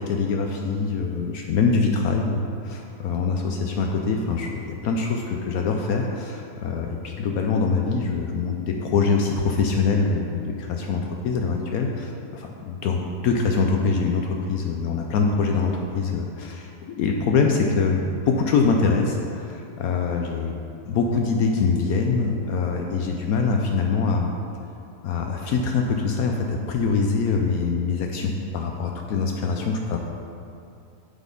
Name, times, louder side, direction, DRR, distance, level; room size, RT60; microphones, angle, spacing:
voice 1, 0.0-20.5 20.9-24.3 25.0-30.0, left 4 dB, 70° left, 1 dB, 1.0 m, -24 dB
8.1 x 4.1 x 5.2 m, 2.6 s
omnidirectional pair, 1.7 m